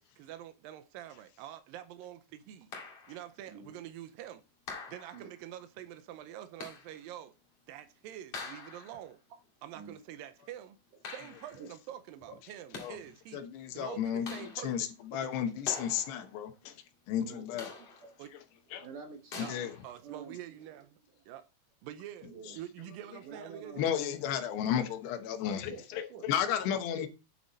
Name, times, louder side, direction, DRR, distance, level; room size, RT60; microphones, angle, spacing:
voice 1, 0.0-2.7 3.1-4.4 4.9-7.3 7.7-9.2 9.6-10.8 11.1-13.5 13.7-15.3 18.2-18.3 19.4-21.0 21.3-21.5 21.8-23.9, right 12 dB, 80° right, 2.0 m, -46 dB
sound 1, 2.7-3.3 4.7-5.4 6.6-7.0 8.3-9.1 11.0-11.7 12.5-13.1 14.3-14.9 15.7-16.4 17.6-18.2 19.3-19.9, left 4 dB, 40° left, 2.9 m, -45 dB
voice 2, 13.3-16.7 17.1-17.7 18.7-18.9 19.4-19.7 23.8-27.1, left 9 dB, 80° left, 3.1 m, -33 dB
voice 3, 17.8-18.1 18.8-19.7 20.0-20.4 22.2-22.6 23.2-23.8 25.5-26.3 27.0-27.1, right 6 dB, 65° right, 2.2 m, -48 dB
9.7 x 6.7 x 4.1 m
omnidirectional pair, 5.0 m